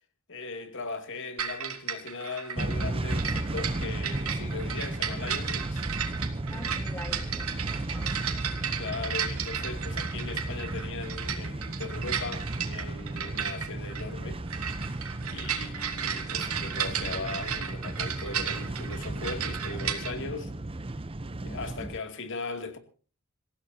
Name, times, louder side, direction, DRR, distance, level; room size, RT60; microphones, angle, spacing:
voice 1, 0.3-5.8 8.8-14.4 15.2-20.5 21.4-22.8, left 3 dB, 60° left, 2.5 m, -38 dB
sound 1, 1.4-20.1, right 8 dB, 80° right, 3.0 m, -34 dB
sound 2, 2.6-22.0, right 2 dB, 25° right, 0.7 m, -34 dB
voice 2, 6.5-8.2 21.4-21.9, left 1 dB, 15° left, 1.8 m, -45 dB
27.5 x 16.0 x 2.8 m
head